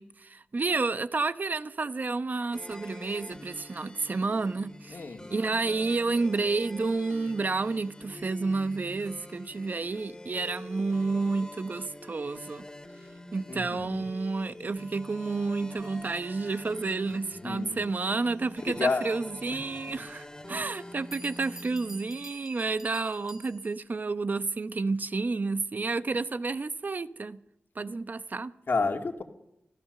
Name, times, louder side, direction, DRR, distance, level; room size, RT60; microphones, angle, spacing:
voice 1, 0.0-5.0 5.3-12.6 13.3-27.4 27.8-28.5, right 3 dB, 50° right, 0.9 m, -30 dB
sound 1, 2.5-22.3, left 1 dB, 20° left, 2.6 m, -46 dB
voice 2, 4.9-5.2 13.5-14.1 17.4-17.8 18.6-19.2 19.9-20.0 28.7-29.2, left 3 dB, 65° left, 2.6 m, -30 dB
Bell, 20.7-20.8 21.1-23.9, right 1 dB, 10° right, 2.0 m, -49 dB
26.0 x 16.0 x 6.7 m
wide cardioid pair, 80°, 4 cm